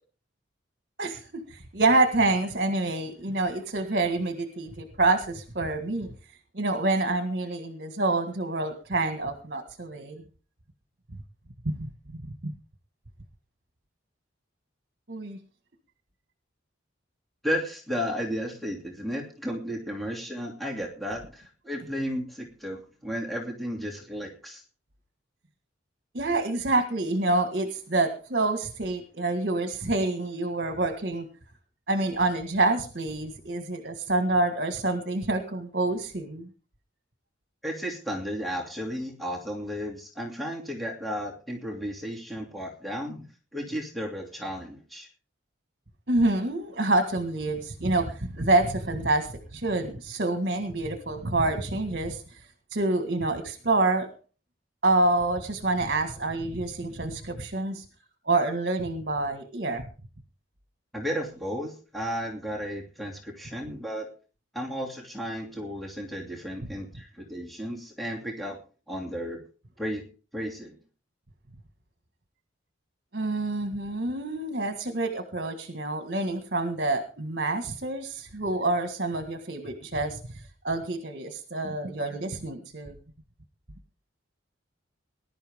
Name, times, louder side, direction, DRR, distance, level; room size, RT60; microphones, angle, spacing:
voice 1, 1.0-6.1 6.5-10.2 11.6-11.8 12.1-12.5 15.1-15.4 26.1-31.3 31.9-36.5 46.1-52.4 52.7-54.1 54.8-57.8 58.3-59.9 73.1-83.0, right 2 dB, 55° right, 7 dB, 1.7 m, -27 dB
voice 2, 17.4-24.6 37.6-43.3 43.5-45.1 60.9-64.1 64.5-68.6 68.9-69.4 69.8-70.0 70.3-70.8, equal, ahead, 0 dB, 2.8 m, -33 dB
20.0 x 12.0 x 3.7 m, 0.37 s
head